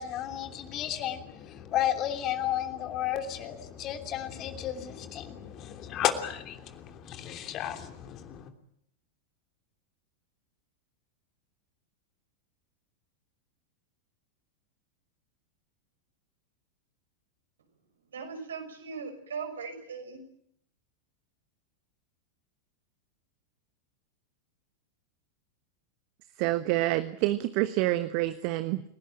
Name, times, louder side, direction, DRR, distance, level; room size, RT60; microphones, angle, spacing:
voice 1, 0.0-8.5, left 11 dB, 35° left, 6 dB, 3.1 m, -33 dB
voice 2, 18.1-20.2, right 5 dB, 65° right, 5 dB, 6.2 m, -39 dB
voice 3, 26.4-28.8, right 17 dB, 45° right, 12 dB, 1.2 m, -27 dB
30.0 x 18.0 x 9.0 m, 0.72 s
figure-of-eight pair, 90°, 0 cm